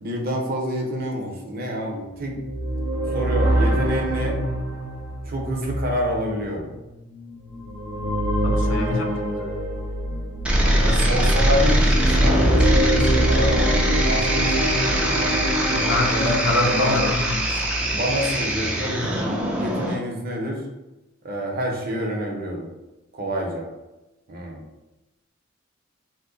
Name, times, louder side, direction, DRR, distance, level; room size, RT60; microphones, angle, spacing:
voice 1, 0.0-2.4 3.1-4.4 5.3-6.7 10.8-15.2 16.1-17.0 17.9-20.6 21.2-22.7 23.1-23.7 24.3-24.6, equal, 50° right, 0 dB, 0.7 m, -27 dB
sound 1, 2.3-10.8 11.4-17.1, right 1 dB, 85° right, 0.7 m, -25 dB
voice 2, 8.4-9.5 10.6-11.0 15.8-17.7, left 3 dB, 70° left, 4 dB, 0.4 m, -26 dB
sound 2, 10.4-19.9, equal, 5° right, 0.4 m, -22 dB
2.8 x 2.1 x 3.8 m, 1.0 s
head